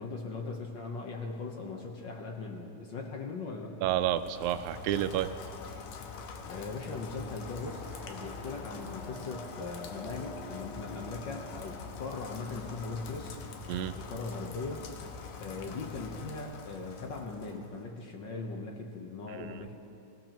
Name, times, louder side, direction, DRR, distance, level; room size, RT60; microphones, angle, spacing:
voice 1, 0.0-3.7 6.4-13.4 13.9-14.8 15.4-19.7, left 3 dB, 60° left, 1 dB, 1.2 m, -39 dB
voice 2, 3.8-5.3 13.7-13.9 19.3-19.5, right 12 dB, 85° right, 11 dB, 2.0 m, -30 dB
Rain, 4.0-17.8, left 5 dB, 85° left, 2.4 m, -44 dB
sound 1, 7.3-15.2, equal, ahead, 0.8 m, -51 dB
25.5 x 16.0 x 3.0 m, 2.8 s
omnidirectional pair, 3.4 m